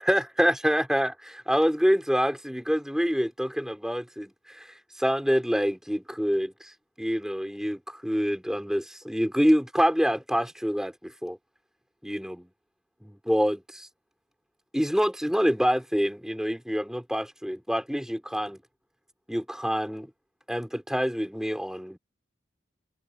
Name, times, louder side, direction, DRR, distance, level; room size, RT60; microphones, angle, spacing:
voice 1, 0.0-11.4 12.0-12.5 13.0-13.9 14.7-18.6 19.3-20.1 20.5-22.0, equal, 5° right, 5.2 m, -26 dB
head